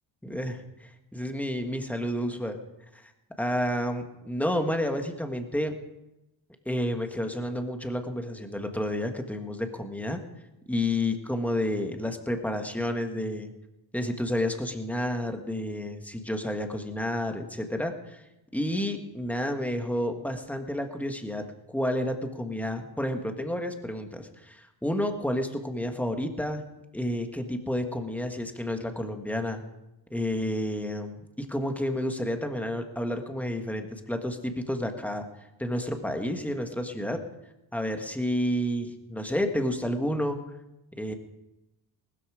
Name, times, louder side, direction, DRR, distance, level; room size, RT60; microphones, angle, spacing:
voice 1, 0.2-2.6 2.9-3.1 3.4-5.7 6.6-10.2 10.7-13.5 13.9-18.2 18.5-26.6 26.9-29.6 30.1-35.3 35.6-37.2 37.7-40.4 41.0-41.1, left 1 dB, 5° left, 5 dB, 1.5 m, -30 dB
19.5 x 13.0 x 4.9 m, 0.95 s
cardioid pair, 145°, 45 cm